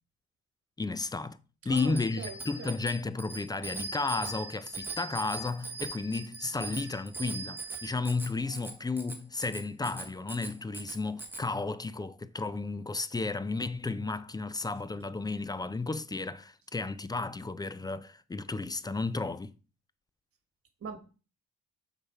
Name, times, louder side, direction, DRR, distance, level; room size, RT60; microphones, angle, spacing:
voice 1, 0.8-1.4 1.6-19.5, left 3 dB, 15° left, 0.4 m, -33 dB
voice 2, 1.6-2.8 20.8-21.0, right 5 dB, 50° right, 1.5 m, -41 dB
Bicycle bell, 1.7-11.4, right 3 dB, 5° right, 1.4 m, -41 dB
6.6 x 4.1 x 4.6 m
cardioid pair, 90°, 30 cm